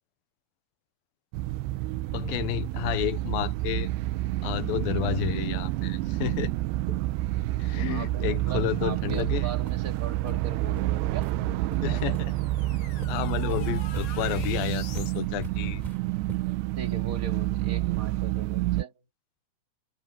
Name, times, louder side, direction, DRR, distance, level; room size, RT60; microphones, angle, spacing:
sound 1, 1.3-18.8, right 17 dB, 85° right, 2.7 m, -29 dB
voice 1, 2.1-3.9 4.4-6.5 6.9-7.0 7.6-9.5 11.8-12.3 13.1-15.8, left 14 dB, 70° left, 2.6 m, -31 dB
voice 2, 4.7-5.3 7.7-11.3 16.7-18.9, right 6 dB, 30° right, 1.7 m, -40 dB
sound 2, 9.1-9.3 9.7-9.8 10.2-10.3 10.8-10.9 11.2-11.4 11.7-12.2 12.6-12.7 13.0-16.6, right 1 dB, 10° right, 4.1 m, -42 dB
sound 3, 11.3-15.2, left 7 dB, 50° left, 2.8 m, -45 dB
omnidirectional pair, 4.7 m